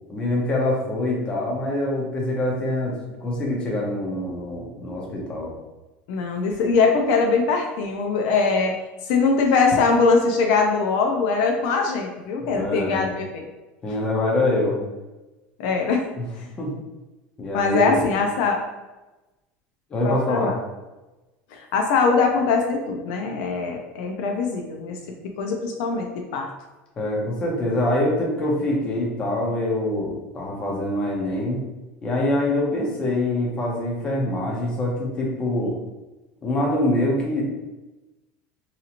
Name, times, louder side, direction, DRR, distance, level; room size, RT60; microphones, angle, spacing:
voice 1, 0.1-3.0 3.2-5.5 12.4-13.1 13.8-14.8 16.2-16.3 16.6-16.8 17.4-18.1 19.9-20.5 27.0-31.6 32.0-35.7 36.4-37.4, left 1 dB, 20° left, -2 dB, 0.6 m, -24 dB
voice 2, 6.1-8.7 9.1-13.4 15.6-16.0 16.4-16.5 17.5-18.6 20.0-20.5 21.5-25.0 25.4-26.5, left 4 dB, 65° left, 2 dB, 0.4 m, -22 dB
2.8 x 2.8 x 2.4 m, 1.1 s
cardioid pair, 180°, 5 cm